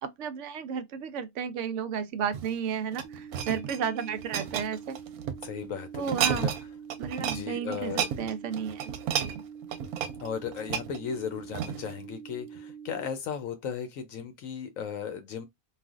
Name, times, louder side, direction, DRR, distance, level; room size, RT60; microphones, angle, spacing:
voice 1, 0.0-5.0 6.0-6.5 7.0-8.9 9.2-9.4, right 7 dB, 65° right, 0.8 m, -33 dB
sound 1, 2.2-5.5 5.9-6.6 6.9-7.4 7.7-12.0 12.6-12.7, right 9 dB, 85° right, 1.1 m, -32 dB
sound 2, 3.0-13.0, right 7 dB, 30° right, 1.0 m, -45 dB
voice 2, 5.4-6.5 7.2-8.0 10.2-15.5, left 7 dB, 70° left, 1.0 m, -36 dB
3.2 x 2.4 x 2.4 m
omnidirectional pair, 1.5 m